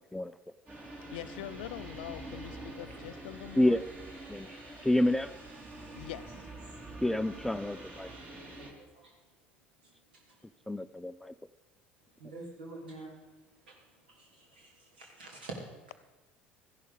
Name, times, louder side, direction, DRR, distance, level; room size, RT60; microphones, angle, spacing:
sound 1, 0.7-8.7, right 2 dB, 35° right, 3.3 m, -46 dB
voice 1, 1.1-3.8 5.9-6.5, left 13 dB, 65° left, 15 dB, 0.5 m, -43 dB
voice 2, 4.8-5.3 7.0-8.1 10.7-11.3, left 1 dB, 5° left, 13 dB, 0.4 m, -28 dB
voice 3, 8.0-8.7 8.9-9.1 9.8-10.4 12.2-13.2 13.7-13.8 14.1-15.5, right 3 dB, 70° right, 0 dB, 2.9 m, -48 dB
14.5 x 11.0 x 5.1 m, 1.2 s
figure-of-eight pair, 60°, 5 cm